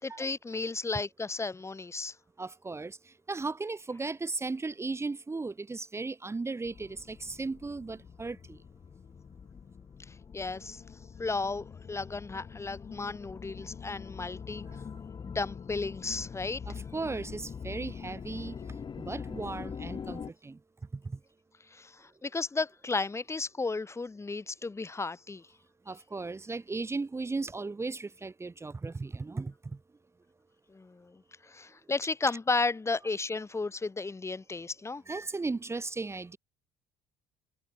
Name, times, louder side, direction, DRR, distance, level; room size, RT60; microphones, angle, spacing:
voice 1, 0.0-2.2 10.1-10.8 11.2-14.6 15.2-16.6 21.7-25.5 30.7-35.0, left 3 dB, 25° left, 3.9 m, -34 dB
voice 2, 2.4-8.6 14.7-14.8 16.7-20.6 20.9-21.2 25.9-29.8 35.1-36.4, right 3 dB, 20° right, 2.5 m, -36 dB
sound 1, 6.6-20.3, left 6 dB, 40° left, 3.4 m, -44 dB
hypercardioid pair, 60°, 12 cm